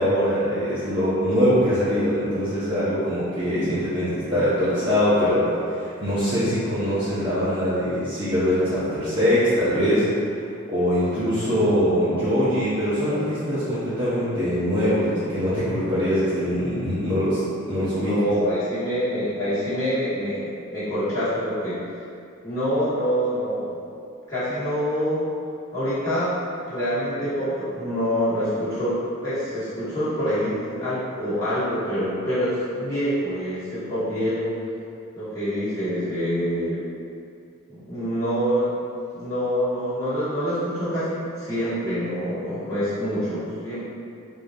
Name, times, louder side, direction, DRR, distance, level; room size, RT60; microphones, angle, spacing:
voice 1, 0.0-10.1 10.7-17.4 17.7-18.2, equal, 20° right, -13 dB, 0.8 m, -22 dB
voice 2, 17.9-20.4 20.7-21.8 22.4-23.8 24.3-25.2 25.7-26.3 26.7-34.5 35.2-36.8 37.7-38.7 39.1-43.8, equal, 15° left, -15 dB, 1.4 m, -26 dB
4.9 x 2.7 x 2.4 m, 2.5 s
head